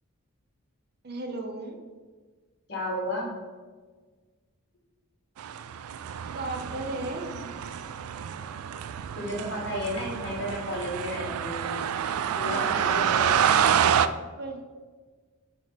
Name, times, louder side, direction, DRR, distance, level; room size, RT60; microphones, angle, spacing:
voice 1, 1.0-1.8 6.3-7.4 14.4-14.6, right 2 dB, 45° right, 3 dB, 0.6 m, -34 dB
voice 2, 2.7-3.3 9.1-11.7 12.3-13.6, left 1 dB, 50° left, -2 dB, 1.8 m, -33 dB
sound 1, 5.4-14.1, right 8 dB, 85° right, 0.3 m, -27 dB
8.5 x 3.0 x 4.1 m, 1.4 s
head